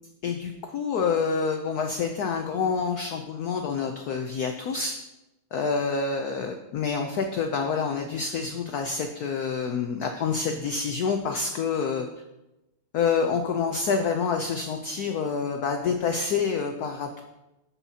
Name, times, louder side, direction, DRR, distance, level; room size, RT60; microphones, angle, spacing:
voice 1, 0.2-5.0 5.5-12.1 12.9-17.2, left 5 dB, 85° left, 5 dB, 0.8 m, -27 dB
14.0 x 5.6 x 2.8 m, 0.98 s
omnidirectional pair, 2.4 m